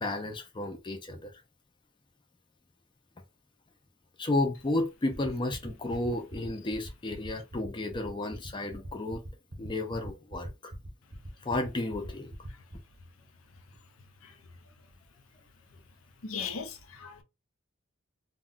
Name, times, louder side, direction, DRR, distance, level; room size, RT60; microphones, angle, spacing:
voice 1, 0.0-1.3 4.2-9.2 9.6-10.7 11.4-12.3, left 2 dB, 20° left, 0.4 m, -32 dB
sound 1, 5.1-12.8, right 1 dB, 30° right, 0.6 m, -42 dB
voice 2, 16.2-17.2, left 6 dB, 75° left, 0.7 m, -38 dB
2.2 x 2.2 x 3.7 m
head